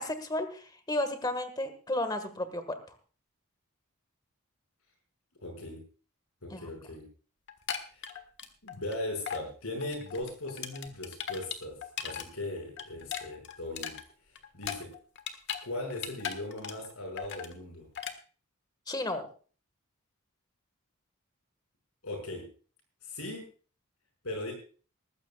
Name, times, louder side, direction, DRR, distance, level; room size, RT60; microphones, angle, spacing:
voice 1, 0.0-2.8 6.5-6.6 18.9-19.3, left 1 dB, 20° left, 9 dB, 1.6 m, -33 dB
voice 2, 5.4-5.8 6.4-7.1 7.9-8.1 8.6-11.8 12.0-14.0 14.5-14.9 15.6-17.9 22.0-22.4 23.0-23.4 24.2-24.5, left 1 dB, 80° left, 3 dB, 5.6 m, -38 dB
sound 1, 7.5-9.0 9.3-9.5 9.8-12.3 12.6-15.6 15.9-16.9 17.2-17.5 18.0-18.2, left 8 dB, 55° left, 1.5 m, -38 dB
19.5 x 15.0 x 2.3 m, 0.38 s
head